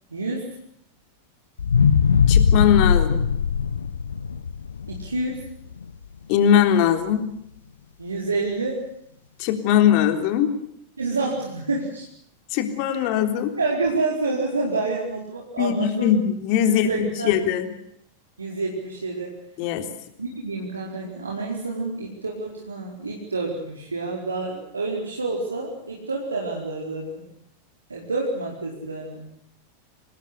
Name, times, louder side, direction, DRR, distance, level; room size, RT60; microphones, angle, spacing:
voice 1, 0.1-0.5 4.9-5.5 8.0-8.8 11.0-12.0 12.9-13.1 13.6-16.2 16.9-17.3 18.4-19.3 20.2-27.3 27.9-29.3, right 3 dB, 75° right, -2 dB, 4.8 m, -28 dB
sound 1, 1.6-5.8 6.3-6.4, left 6 dB, 70° left, 1.2 m, -20 dB
voice 2, 2.3-3.2 6.3-7.2 9.4-10.6 12.5-13.5 15.6-16.9 17.2-17.7 19.6-19.8, left 9 dB, 45° left, 8 dB, 3.6 m, -20 dB
26.5 x 19.5 x 8.3 m, 0.72 s
figure-of-eight pair, 90°, 0 cm